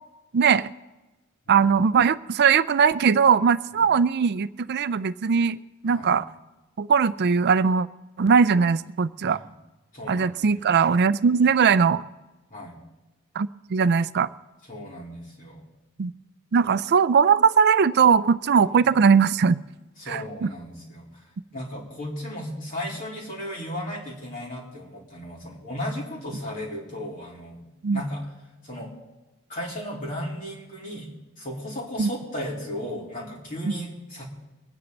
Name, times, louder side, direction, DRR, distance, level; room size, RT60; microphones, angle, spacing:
voice 1, 0.3-0.7 1.5-5.6 5.8-6.2 6.8-7.9 8.2-9.4 10.1-12.0 13.4-14.3 16.0-16.1 16.5-19.6 20.1-20.5 27.8-28.0 32.0-32.1, right 6 dB, 50° right, 16 dB, 0.4 m, -20 dB
voice 2, 9.9-10.6 12.5-12.7 14.6-15.6 18.7-18.9 20.0-21.1 21.5-27.6 27.9-28.3 28.6-28.9 29.5-34.3, equal, 40° left, -4 dB, 4.0 m, -35 dB
24.0 x 10.0 x 4.0 m, 1.1 s
head